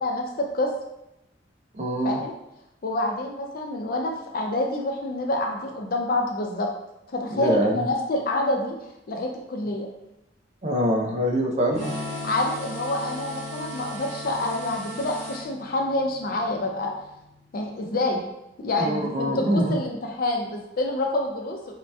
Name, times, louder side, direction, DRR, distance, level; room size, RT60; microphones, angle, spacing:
voice 1, 0.0-0.7 2.0-2.3 2.8-6.7 7.1-8.8 9.1-9.9 12.2-16.9 17.5-18.2 18.6-21.7, left 2 dB, 50° left, 2 dB, 0.5 m, -27 dB
voice 2, 1.8-2.2 7.3-7.8 10.6-11.9 18.8-19.8, equal, 40° right, 1 dB, 0.4 m, -24 dB
Electric guitar / Strum, 11.7-17.4, left 2 dB, 30° left, 0.9 m, -39 dB
sound 1, 11.7-15.5, right 1 dB, 85° right, 0.8 m, -38 dB
2.7 x 2.1 x 3.2 m, 0.88 s
head